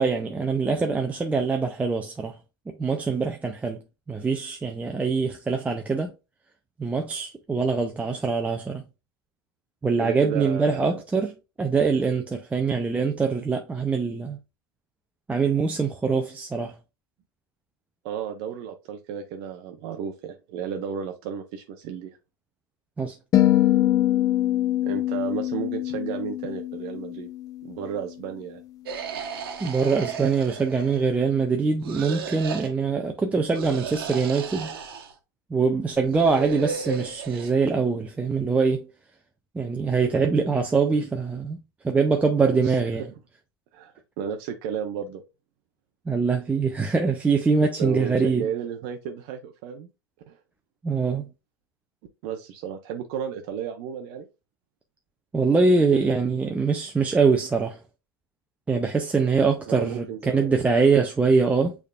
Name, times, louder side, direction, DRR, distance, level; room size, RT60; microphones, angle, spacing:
voice 1, 0.0-2.4 2.7-3.8 4.1-6.1 6.8-8.8 9.8-14.4 15.3-16.7 23.0-23.2 29.6-34.7 35.5-38.9 39.5-43.0 46.1-48.5 50.8-51.3 55.3-57.8 58.7-61.8, right 4 dB, 10° right, 0.5 m, -23 dB
voice 2, 10.0-11.0 18.0-22.2 24.8-27.3 27.6-28.6 42.4-42.8 43.7-45.2 47.6-49.9 50.3-50.4 52.2-54.3 59.7-60.5, right 8 dB, 50° right, 0.7 m, -33 dB
sound 1, 23.3-27.6, left 14 dB, 30° left, 0.7 m, -23 dB
sound 2, 28.9-31.1 31.8-32.7 33.5-35.2 36.0-37.5, right 5 dB, 75° right, 1.1 m, -34 dB
6.4 x 3.5 x 2.3 m
hypercardioid pair, 105°, 12 cm